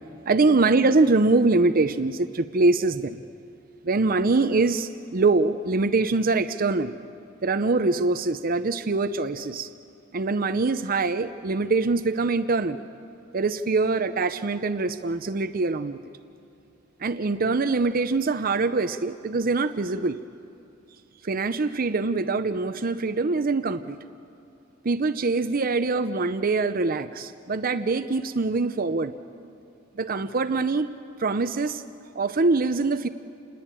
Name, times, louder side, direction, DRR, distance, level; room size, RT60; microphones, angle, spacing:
voice 1, 0.3-3.2 3.8-6.9 7.4-9.7 10.1-12.8 13.3-16.0 17.0-20.2 21.2-24.0 24.8-29.1 29.9-30.9 31.2-31.8 32.2-33.1, right 3 dB, 45° right, 11 dB, 0.7 m, -24 dB
29.0 x 21.0 x 9.0 m, 2.5 s
head